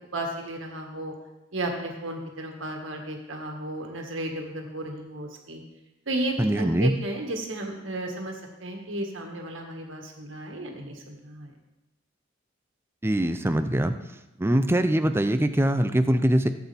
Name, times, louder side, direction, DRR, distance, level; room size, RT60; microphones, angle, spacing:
voice 1, 0.1-1.1 1.5-5.6 6.1-8.3 8.6-11.5, right 1 dB, 75° right, 1 dB, 1.9 m, -33 dB
voice 2, 6.4-6.9 13.0-14.0 14.4-16.5, right 1 dB, 10° right, 9 dB, 0.5 m, -22 dB
16.0 x 8.1 x 3.5 m, 0.97 s
head